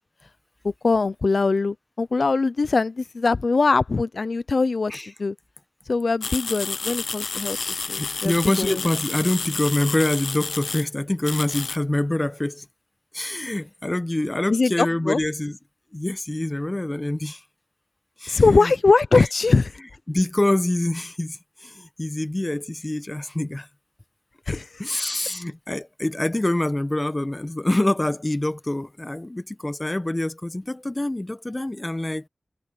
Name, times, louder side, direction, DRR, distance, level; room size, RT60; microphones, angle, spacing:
voice 1, 0.6-4.9 5.2-5.4 5.9-8.8 14.5-15.2 18.3-19.7 24.5-24.7, left 3 dB, 70° left, 0.5 m, -21 dB
sound 1, 6.2-10.8 11.2-11.8, left 4 dB, 85° left, 0.9 m, -30 dB
voice 2, 7.5-12.6 13.1-15.6 15.9-17.4 18.2-18.7 19.1-19.3 20.1-23.7 24.5-32.3, left 1 dB, 25° left, 1.1 m, -26 dB
wide cardioid pair, 60°, 0 cm